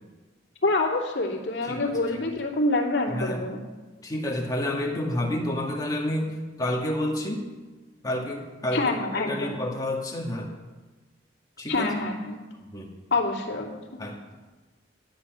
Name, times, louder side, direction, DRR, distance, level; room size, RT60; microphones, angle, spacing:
voice 1, 0.6-3.6 8.7-9.6 11.7-12.4 13.1-14.0, left 2 dB, 65° left, -2 dB, 2.7 m, -26 dB
voice 2, 1.6-2.0 3.1-3.4 4.0-7.5 8.0-10.5 11.6-11.9 12.7-12.9 14.0-14.2, left 1 dB, 20° left, -1 dB, 2.0 m, -29 dB
13.0 x 10.0 x 6.2 m, 1.2 s
head